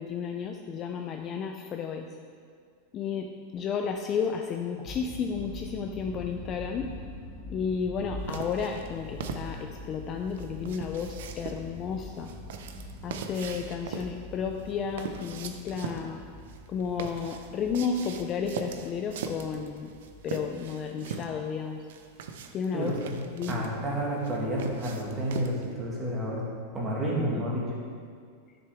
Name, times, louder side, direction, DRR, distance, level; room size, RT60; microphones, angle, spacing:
voice 1, 0.0-2.1 2.9-6.9 7.5-12.3 13.0-16.2 16.7-19.9 20.2-21.8 22.5-23.0 23.3-23.7 27.3-27.4, left 6 dB, 25° left, 4 dB, 0.4 m, -32 dB
sound 1, 4.8-21.0, left 2 dB, 10° left, 1.7 m, -44 dB
sound 2, 8.3-25.7, right 6 dB, 65° right, 0.6 m, -40 dB
voice 2, 22.7-23.2 23.5-26.4 26.7-27.7, right 1 dB, 15° right, -4 dB, 1.6 m, -30 dB
10.5 x 6.8 x 3.4 m, 2.1 s
supercardioid pair, 170°, 0 cm